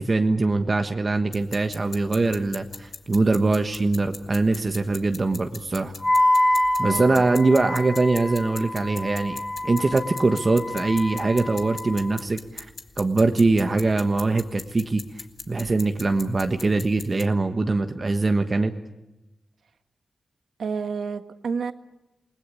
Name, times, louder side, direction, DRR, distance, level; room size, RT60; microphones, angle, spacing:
voice 1, 0.0-5.9 6.8-12.7 13.0-15.0 15.5-18.7, right 3 dB, 35° right, 6 dB, 1.3 m, -22 dB
sound 1, 1.3-17.2, left 3 dB, 40° left, 2.0 m, -42 dB
Wind instrument woodwind instrument, 6.0-12.2, left 1 dB, 20° left, 2.1 m, -26 dB
voice 2, 6.8-7.2 20.6-21.7, right 5 dB, 80° right, 9 dB, 1.6 m, -30 dB
29.0 x 20.5 x 8.5 m, 1.0 s
wide cardioid pair, 120°, 0 cm